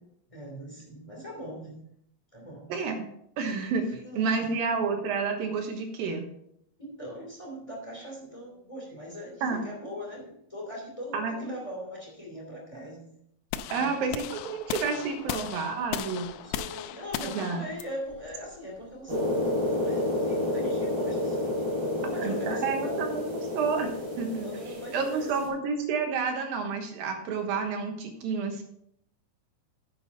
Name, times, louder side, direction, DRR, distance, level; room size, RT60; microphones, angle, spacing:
voice 1, 0.3-1.8 2.3-2.7 4.0-4.5 6.8-13.0 13.7-14.2 15.2-15.3 16.3-21.5 21.8-23.0 24.4-25.5, equal, 10° left, -1 dB, 1.7 m, -41 dB
voice 2, 2.7-3.0 3.4-6.3 9.4-9.6 11.1-11.5 13.7-16.3 17.3-17.6 22.2-23.9 24.2-24.5 24.9-28.6, right 5 dB, 70° right, 4 dB, 2.6 m, -30 dB
sound 1, 13.5-19.6, left 11 dB, 85° left, 2.8 m, -37 dB
sound 2, 19.1-25.4, left 1 dB, 20° right, 4.0 m, -30 dB
10.0 x 8.4 x 4.1 m, 0.73 s
omnidirectional pair, 5.1 m